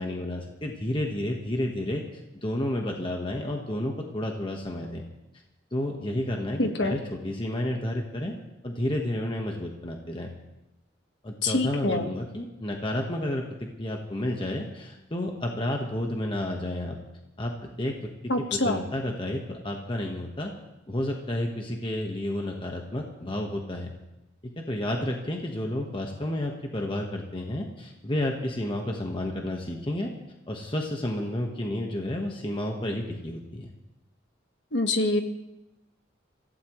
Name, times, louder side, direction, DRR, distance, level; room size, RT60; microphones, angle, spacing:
voice 1, 0.0-2.0 2.4-5.0 5.7-8.3 8.6-10.3 11.2-17.0 17.4-17.5 17.8-18.1 18.5-20.5 20.9-23.9 24.6-30.1 30.5-33.7, left 1 dB, 25° left, 1 dB, 1.3 m, -31 dB
voice 2, 6.6-6.9 11.4-12.0 18.3-18.8 34.7-35.2, left 2 dB, 60° left, 5 dB, 1.5 m, -25 dB
26.0 x 15.5 x 3.2 m, 0.95 s
head